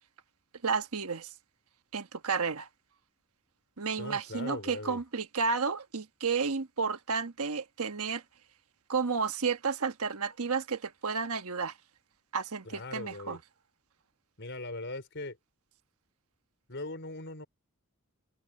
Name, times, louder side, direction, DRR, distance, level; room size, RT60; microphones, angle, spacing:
voice 1, 0.6-1.3 1.9-2.7 3.8-8.2 8.9-11.7 12.3-13.4, right 5 dB, 80° right, 1.3 m, -32 dB
voice 2, 4.0-5.0 12.6-13.4 14.4-15.4 16.7-17.5, left 2 dB, 55° left, 4.5 m, -40 dB
open air
head